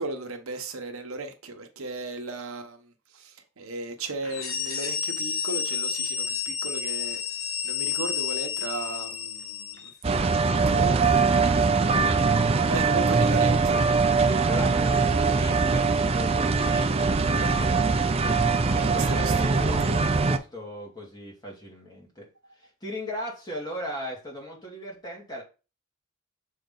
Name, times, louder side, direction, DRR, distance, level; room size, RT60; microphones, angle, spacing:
voice 1, 0.0-2.9 3.1-7.2 7.6-9.9 10.7-11.7 12.7-13.8 18.9-19.7, right 2 dB, 75° right, 1.1 m, -35 dB
sound 1, 4.2-9.9, left 7 dB, 75° left, 1.0 m, -30 dB
sound 2, 10.0-20.4, right 4 dB, 30° right, 0.4 m, -22 dB
voice 2, 14.2-22.2 22.6-25.4, equal, 20° left, 2.3 m, -38 dB
6.5 x 4.4 x 3.8 m
head